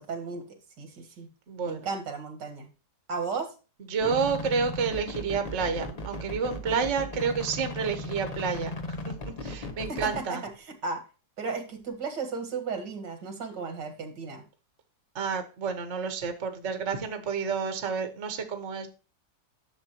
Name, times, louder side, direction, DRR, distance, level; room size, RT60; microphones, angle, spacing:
voice 1, 0.0-1.3 1.7-2.7 3.1-3.5 9.9-11.0 11.4-14.4, right 4 dB, 80° right, 6 dB, 2.4 m, -35 dB
voice 2, 1.5-1.8 3.9-8.7 9.1-9.2 9.4-10.4 15.1-18.9, right 5 dB, 45° right, 7 dB, 1.4 m, -29 dB
sound 1, 4.0-10.2, left 1 dB, 30° left, 0.9 m, -37 dB
10.5 x 7.0 x 2.9 m, 0.32 s
omnidirectional pair, 1.9 m